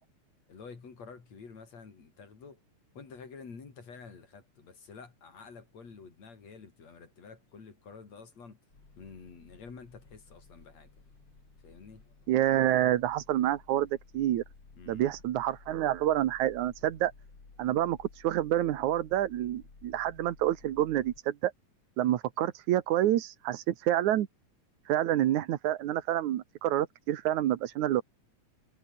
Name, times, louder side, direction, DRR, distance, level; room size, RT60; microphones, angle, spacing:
voice 1, 0.5-2.6 3.0-8.6 9.0-11.0 11.6-12.0 14.7-15.1, left 5 dB, 65° left, 5.4 m, -49 dB
sound 1, 8.7-21.2, left 4 dB, 35° left, 4.5 m, -56 dB
voice 2, 12.3-14.4 14.9-17.1 17.6-21.5 22.0-24.3 24.9-28.0, right 13 dB, 80° right, 2.6 m, -28 dB
omnidirectional pair, 3.3 m